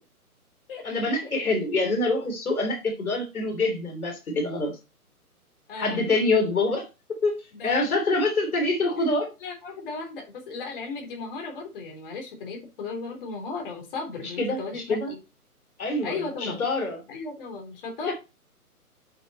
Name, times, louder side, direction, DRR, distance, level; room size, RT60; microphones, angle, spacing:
voice 1, 0.8-4.8 5.8-6.9 7.2-7.3 7.6-9.3 14.4-15.1 15.8-17.0 18.0-18.1, left 2 dB, 65° left, 3 dB, 3.3 m, -25 dB
voice 2, 5.7-6.0 7.6-7.8 9.4-15.2 16.0-16.6 17.1-18.1, left 4 dB, 35° left, 2 dB, 3.4 m, -35 dB
8.0 x 6.5 x 4.2 m, 0.28 s
figure-of-eight pair, 135°, 46 cm